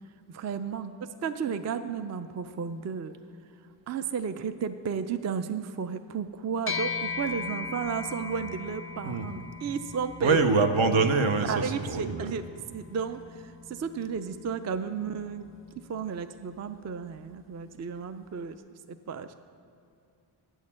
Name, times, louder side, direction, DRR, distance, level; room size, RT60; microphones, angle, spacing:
voice 1, 0.3-0.9 1.2-3.1 3.9-10.4 11.5-12.4 12.7-15.5 15.9-18.5 18.9-19.3, right 6 dB, 35° right, 10 dB, 0.4 m, -33 dB
sound 1, 6.7-16.3, left 5 dB, 30° left, 0.4 m, -39 dB
voice 2, 10.2-12.3, right 4 dB, 70° right, 7 dB, 0.8 m, -24 dB
7.8 x 6.5 x 7.4 m, 2.5 s
cardioid pair, 55°, 50 cm